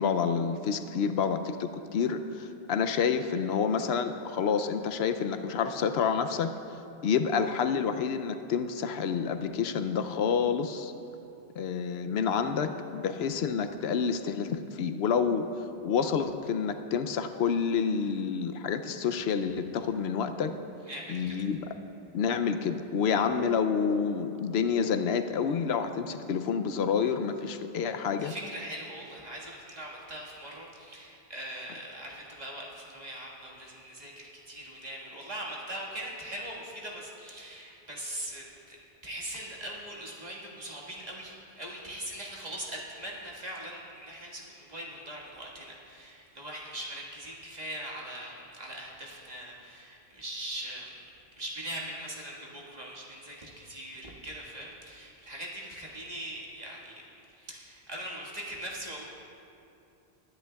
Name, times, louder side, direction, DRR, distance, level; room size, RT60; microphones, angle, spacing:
voice 1, 0.0-6.5 7.0-10.9 11.6-15.4 15.8-20.5 21.1-21.7 22.1-28.3, left 6 dB, 80° left, 8 dB, 0.8 m, -28 dB
voice 2, 20.8-21.4 23.1-23.2 28.2-57.0 57.3-59.1, right 1 dB, 40° right, -4 dB, 1.8 m, -41 dB
21.0 x 10.0 x 2.3 m, 2.7 s
omnidirectional pair, 1.1 m